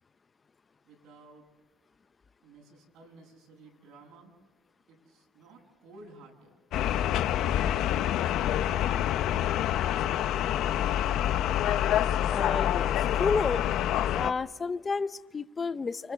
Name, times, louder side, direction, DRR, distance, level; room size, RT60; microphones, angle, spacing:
voice 1, 0.8-1.5 2.4-4.3 4.9-6.5 6.9-7.0 7.3-7.6 7.9-8.3 8.7-9.6, right 2 dB, 75° right, 1 dB, 8.0 m, -54 dB
sound 1, 6.7-14.3, left 11 dB, 70° left, 0.9 m, -27 dB
voice 2, 12.3-13.6 14.1-16.1, left 4 dB, 30° left, 14 dB, 0.8 m, -31 dB
29.5 x 25.0 x 7.0 m, 1.3 s
supercardioid pair, 95°, 0 cm